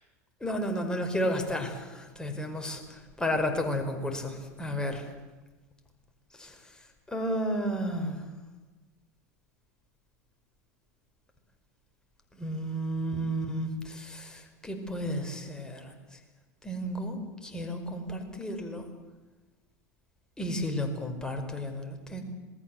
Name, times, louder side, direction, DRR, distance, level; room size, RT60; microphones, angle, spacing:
voice 1, 0.4-5.0 6.4-6.5 7.1-8.2 12.4-15.9 16.6-18.9 20.4-22.2, equal, 10° left, 4 dB, 5.2 m, -32 dB
27.0 x 19.5 x 7.9 m, 1.2 s
hypercardioid pair, 85°, 9 cm